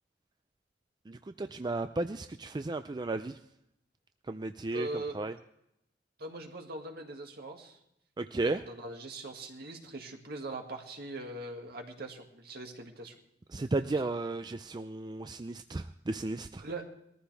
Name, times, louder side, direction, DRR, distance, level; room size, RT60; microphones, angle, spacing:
voice 1, 1.1-3.4 4.3-5.4 8.2-8.6 13.5-16.7, right 2 dB, 25° right, 9 dB, 0.4 m, -34 dB
voice 2, 4.7-5.2 6.2-7.8 8.4-13.1 16.6-16.9, right 2 dB, 60° right, 3 dB, 2.1 m, -41 dB
20.5 x 14.5 x 3.4 m, 0.80 s
head